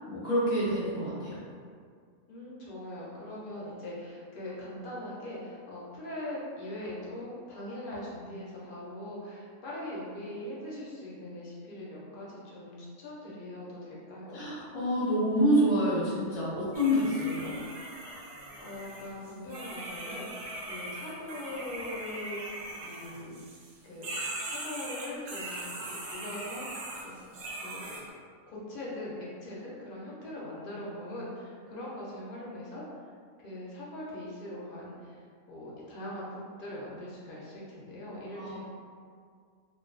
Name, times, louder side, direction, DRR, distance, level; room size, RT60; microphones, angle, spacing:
voice 1, 0.1-1.4 14.3-17.6 38.3-38.6, equal, 5° right, -10 dB, 0.4 m, -27 dB
voice 2, 2.3-14.4 18.6-22.6 22.8-23.4 23.8-24.1 24.4-26.7 27.0-27.2 27.6-27.9 28.5-33.0 33.4-38.6, left 1 dB, 60° left, -6 dB, 0.5 m, -41 dB
sound 1, 16.7-23.7 24.0-28.0, right 2 dB, 65° right, 0.7 m, -40 dB
2.3 x 2.3 x 2.4 m, 2.1 s
omnidirectional pair, 1.4 m